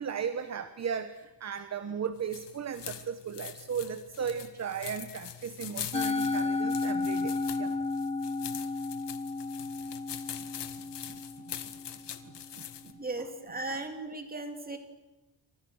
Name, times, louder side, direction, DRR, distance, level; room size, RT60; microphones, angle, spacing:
voice 1, 0.0-7.8 11.1-11.5 12.2-13.3 13.7-13.8, right 7 dB, 35° right, 10 dB, 1.1 m, -37 dB
sound 1, 2.2-12.9, left 10 dB, 70° left, 1.9 m, -43 dB
Musical instrument, 5.9-12.3, left 3 dB, 15° left, 0.9 m, -33 dB
voice 2, 13.0-14.8, right 2 dB, 20° right, 5 dB, 2.9 m, -37 dB
29.0 x 25.5 x 6.5 m, 1.0 s
wide cardioid pair, 170°, 43 cm